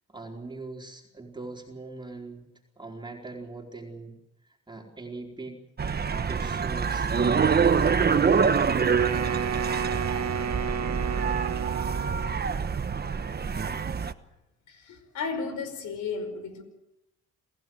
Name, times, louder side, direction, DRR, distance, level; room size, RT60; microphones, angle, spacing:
voice 1, 0.1-2.5 2.8-5.6 6.1-8.5, right 3 dB, 15° right, 4.3 m, -41 dB
sound 1, 5.8-14.1, right 6 dB, 35° right, 1.2 m, -25 dB
Wind instrument woodwind instrument, 9.0-12.4, right 7 dB, 60° right, 1.6 m, -32 dB
voice 2, 14.7-16.6, left 4 dB, 75° left, 5.2 m, -34 dB
28.0 x 16.0 x 7.9 m
cardioid pair, 90°, 30 cm